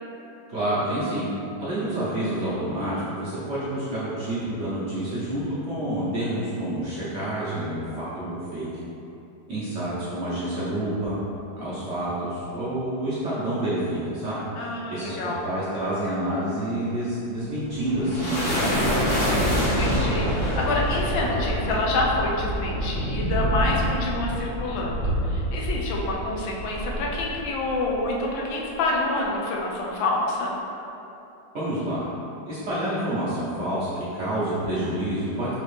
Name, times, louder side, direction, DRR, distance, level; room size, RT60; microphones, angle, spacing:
voice 1, 0.5-1.3 1.6-8.7 9.5-11.2 11.6-14.4 14.9-19.1 31.5-32.1 32.5-35.5, right 1 dB, 55° right, -11 dB, 0.8 m, -28 dB
voice 2, 14.6-15.4 19.5-30.6, left 2 dB, 90° left, -2 dB, 1.4 m, -27 dB
sound 1, 17.6-28.1, equal, 50° left, 1.1 m, -26 dB
4.4 x 2.9 x 3.2 m, 2.9 s
omnidirectional pair, 2.0 m